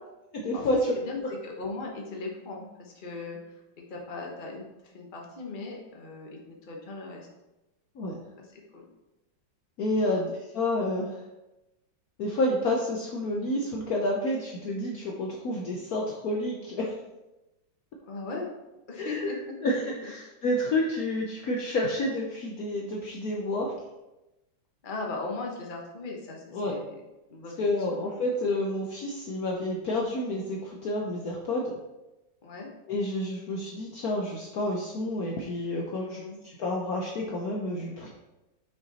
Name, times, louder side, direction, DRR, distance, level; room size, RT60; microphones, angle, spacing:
voice 1, 0.3-0.9 1.2-1.3 8.0-8.2 9.8-11.2 12.2-16.9 19.0-19.3 19.6-23.7 26.5-26.8 27.6-31.7 32.9-38.1, left 1 dB, 60° left, -1 dB, 1.1 m, -29 dB
voice 2, 0.9-3.4 3.9-7.3 8.4-8.9 10.0-10.2 18.1-18.5 18.9-19.7 20.0-20.1 24.8-26.9 27.3-28.1 32.4-32.7 36.1-36.4, left 3 dB, 30° left, 0 dB, 1.1 m, -38 dB
6.0 x 5.5 x 4.2 m, 0.99 s
omnidirectional pair, 2.1 m